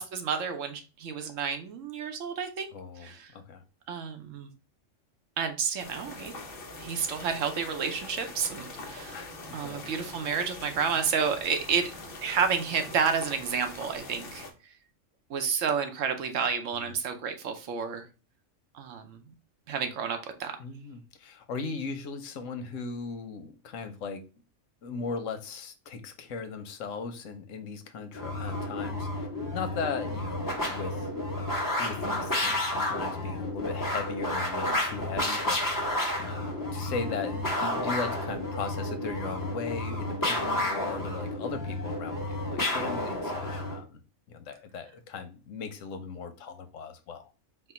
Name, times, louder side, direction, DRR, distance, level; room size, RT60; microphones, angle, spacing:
voice 1, 0.0-2.7 3.0-3.3 3.9-4.5 5.4-6.3 6.8-9.2 9.5-11.9 12.2-14.4 15.3-18.1 18.7-19.2 19.7-20.6, right 6 dB, 85° right, 1.1 m, -30 dB
voice 2, 2.7-3.6 9.1-9.9 16.7-16.9 20.6-24.2 24.8-29.3 29.5-31.1 31.8-35.8 36.2-44.0 44.3-47.3, left 5 dB, 85° left, 1.1 m, -38 dB
sound 1, 5.8-14.5, left 2 dB, 55° left, 0.9 m, -43 dB
sound 2, 28.1-43.8, left 1 dB, 15° left, 1.0 m, -31 dB
4.4 x 2.2 x 4.2 m
omnidirectional pair, 1.3 m